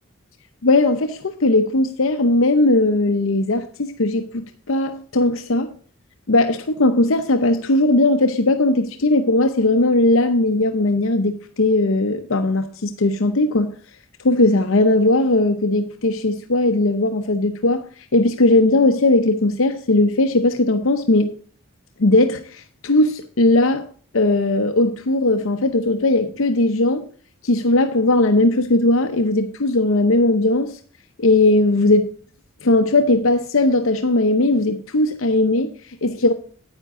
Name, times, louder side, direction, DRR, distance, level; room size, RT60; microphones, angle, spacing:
voice 1, 0.6-5.7 6.3-13.8 14.2-21.3 22.0-27.1 27.4-30.8 31.2-32.1 32.6-36.3, left 2 dB, 65° left, 0.8 m, -18 dB
9.6 x 9.1 x 3.7 m
head